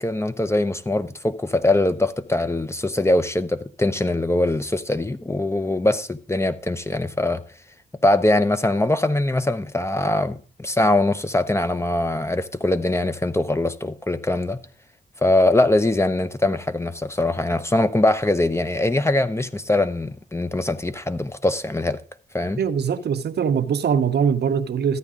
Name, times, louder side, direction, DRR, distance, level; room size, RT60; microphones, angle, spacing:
voice 1, 0.0-7.4 8.0-14.6 15.2-22.0 22.3-22.6, left 2 dB, 15° left, 0.9 m, -22 dB
voice 2, 22.6-25.0, right 7 dB, 70° right, 0.7 m, -22 dB
14.0 x 9.1 x 3.7 m
cardioid pair, 60°, 18 cm